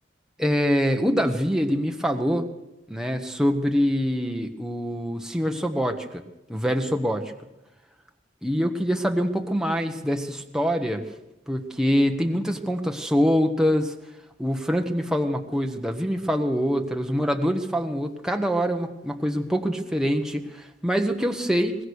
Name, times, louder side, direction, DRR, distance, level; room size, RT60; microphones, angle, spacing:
voice 1, 0.4-2.4 2.9-6.2 6.5-7.3 8.4-11.0 11.5-13.9 14.4-21.7, equal, 5° right, 3 dB, 1.3 m, -24 dB
23.0 x 20.5 x 6.6 m, 0.94 s
head